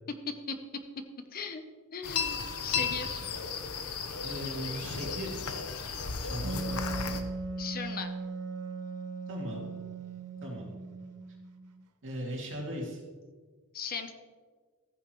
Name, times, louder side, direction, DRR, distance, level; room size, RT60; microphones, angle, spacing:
voice 1, 1.3-1.6 1.9-3.2 7.6-8.1 13.7-14.1, left 5 dB, 40° left, 8 dB, 0.8 m, -37 dB
sound 1, 2.0-7.2, left 5 dB, 80° left, 0.9 m, -34 dB
voice 2, 4.2-5.4 6.2-6.8 9.3-9.7 10.4-10.7 12.0-13.0, equal, 60° right, -2 dB, 2.5 m, -38 dB
Wind instrument woodwind instrument, 6.4-11.8, right 3 dB, 85° right, 0.7 m, -38 dB
14.5 x 9.4 x 3.1 m, 1.5 s
head